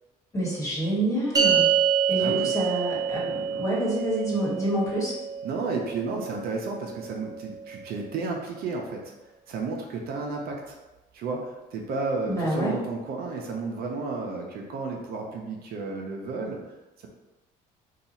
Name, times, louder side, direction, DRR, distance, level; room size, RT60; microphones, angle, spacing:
voice 1, 0.3-1.7 2.1-5.1 12.3-12.8, right 1 dB, 20° left, -5 dB, 1.3 m, -27 dB
sound 1, 1.4-7.9, right 7 dB, 25° right, 0.6 m, -27 dB
voice 2, 2.2-2.5 5.4-9.1 9.5-10.8 11.1-16.6, right 3 dB, 65° right, 0 dB, 0.6 m, -32 dB
2.7 x 2.4 x 4.0 m, 1.1 s
cardioid pair, 110°, 17 cm